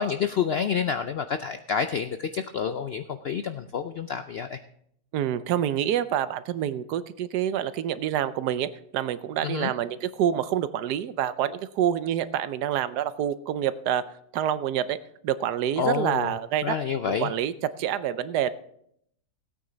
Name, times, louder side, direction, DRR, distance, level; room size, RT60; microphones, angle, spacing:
voice 1, 0.0-4.6 9.4-9.7 15.8-16.3 16.6-17.3, left 7 dB, 80° left, 9 dB, 0.5 m, -28 dB
voice 2, 5.1-14.0 14.3-15.0 15.2-16.7 17.0-18.5, right 10 dB, 85° right, 14 dB, 1.2 m, -27 dB
17.0 x 8.8 x 3.9 m, 0.71 s
omnidirectional pair, 1.7 m